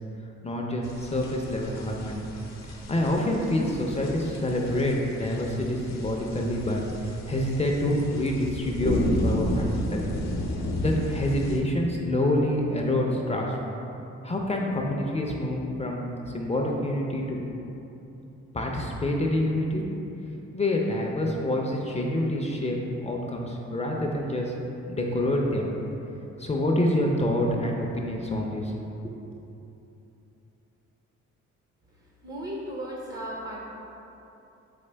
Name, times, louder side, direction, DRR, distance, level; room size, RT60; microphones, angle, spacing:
voice 1, 0.4-2.3 2.6-10.1 10.8-13.5 14.2-16.1 16.3-17.4 18.5-19.8 20.5-24.5 24.8-25.7 26.4-28.7 29.0-29.2, left 1 dB, 20° left, 0 dB, 0.5 m, -27 dB
sound 1, 0.8-11.6, left 1 dB, 65° left, 0.7 m, -33 dB
voice 2, 32.0-33.6, right 1 dB, 40° right, -2 dB, 0.6 m, -36 dB
4.3 x 3.3 x 3.3 m, 3.0 s
cardioid pair, 70°, 30 cm